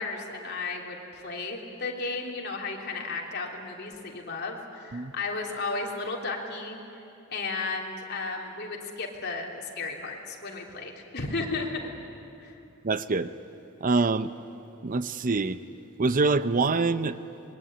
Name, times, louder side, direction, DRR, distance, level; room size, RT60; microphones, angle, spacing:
voice 1, 0.0-6.8 7.3-11.8 12.4-12.5, left 3 dB, 50° left, 0 dB, 3.2 m, -34 dB
voice 2, 12.8-13.3 13.8-14.3 14.8-15.6 16.0-17.2, right 3 dB, 40° right, 13 dB, 0.6 m, -25 dB
26.0 x 22.0 x 10.0 m, 2.8 s
head